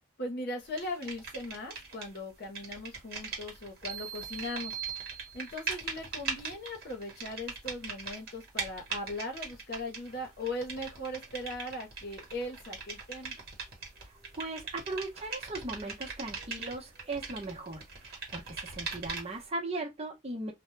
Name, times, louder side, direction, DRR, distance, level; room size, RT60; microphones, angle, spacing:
voice 1, 0.2-4.8 5.3-13.4, left 1 dB, 50° left, 0.8 m, -39 dB
sound 1, 0.8-2.2 2.4-19.5, right 4 dB, 50° right, 1.0 m, -41 dB
sound 2, 3.9-5.8, right 10 dB, 80° right, 0.3 m, -41 dB
voice 2, 14.0-20.5, right 2 dB, 30° right, 0.8 m, -38 dB
2.2 x 2.1 x 3.1 m
head